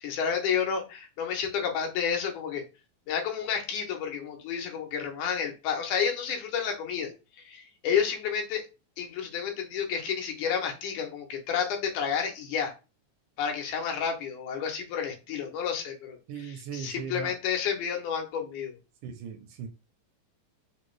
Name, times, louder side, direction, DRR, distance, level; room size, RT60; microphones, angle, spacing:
voice 1, 0.0-2.6 3.1-7.1 7.4-8.6 9.0-12.7 13.4-18.8, left 7 dB, 75° left, 2.2 m, -30 dB
voice 2, 16.3-17.3 19.0-19.7, right 7 dB, 80° right, 1.9 m, -38 dB
5.2 x 2.4 x 3.1 m
omnidirectional pair, 3.8 m